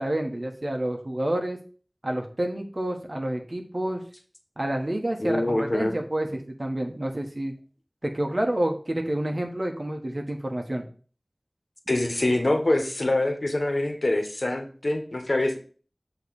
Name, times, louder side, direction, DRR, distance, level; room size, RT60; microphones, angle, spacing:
voice 1, 0.0-1.6 2.0-4.0 4.6-7.5 8.0-10.8, right 1 dB, 55° right, 3 dB, 1.4 m, -29 dB
voice 2, 5.2-5.9 11.9-15.6, left 1 dB, 70° left, 5 dB, 1.3 m, -25 dB
8.0 x 3.2 x 6.4 m, 0.41 s
wide cardioid pair, 45°, 0 cm